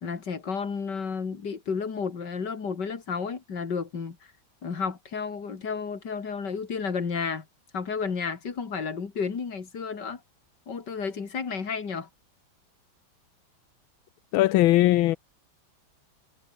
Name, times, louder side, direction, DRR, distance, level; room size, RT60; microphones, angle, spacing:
voice 1, 0.0-4.2 4.6-7.5 7.7-10.2 10.7-12.1, left 5 dB, 60° left, 3.1 m, -32 dB
voice 2, 14.3-15.2, left 16 dB, 90° left, 1.5 m, -19 dB
omnidirectional pair, 2.2 m